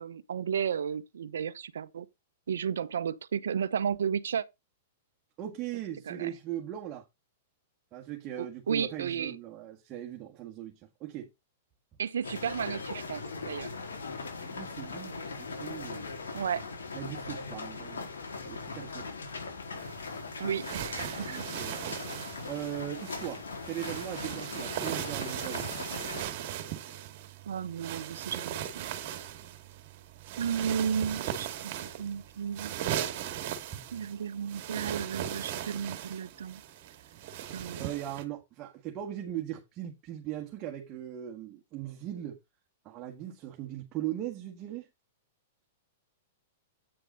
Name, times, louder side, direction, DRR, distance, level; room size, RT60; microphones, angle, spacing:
voice 1, 0.0-2.1 2.5-4.4 6.1-6.3 8.4-9.4 12.0-13.7 16.3-16.6 20.4-21.4 27.5-28.9 30.4-32.8 33.9-36.6 37.5-37.9, right 7 dB, 80° right, 0.8 m, -33 dB
voice 2, 5.4-7.1 7.9-11.3 14.4-16.1 16.9-18.1 18.4-19.2 21.3-21.8 22.5-25.7 37.8-42.4 42.8-44.9, right 12 dB, 35° right, 1.8 m, -39 dB
sound 1, 12.2-26.2, left 4 dB, 90° left, 4.4 m, -40 dB
sound 2, 19.8-38.2, right 11 dB, 55° right, 1.9 m, -38 dB
9.0 x 6.7 x 4.0 m
hypercardioid pair, 120°, 0 cm